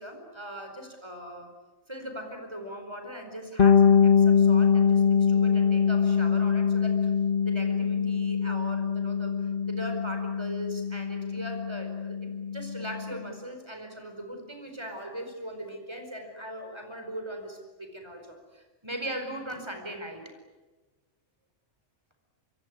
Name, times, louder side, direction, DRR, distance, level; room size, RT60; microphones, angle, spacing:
voice 1, 0.0-1.5 1.9-7.1 7.4-20.3, equal, 20° right, 5 dB, 4.8 m, -39 dB
Bass guitar, 3.6-13.2, left 6 dB, 45° left, 1.3 m, -23 dB
26.0 x 22.5 x 9.7 m, 1.3 s
omnidirectional pair, 1.3 m